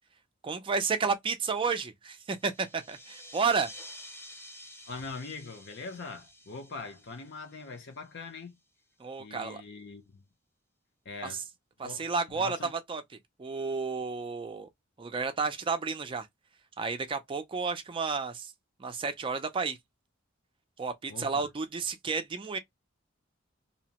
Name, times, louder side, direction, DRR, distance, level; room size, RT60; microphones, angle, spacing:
voice 1, 0.4-3.7 9.0-9.6 11.2-11.4 11.8-13.0 13.4-14.7 15.0-16.3 16.8-18.5 18.8-19.8 20.8-22.6, right 5 dB, 25° right, 0.4 m, -31 dB
sound 1, 2.3-8.4, left 1 dB, 10° left, 0.7 m, -50 dB
voice 2, 4.9-8.6 9.2-10.2 11.0-11.4 11.8-12.1 12.3-12.7 21.1-21.5, left 4 dB, 60° left, 0.7 m, -42 dB
2.8 x 2.1 x 2.8 m
head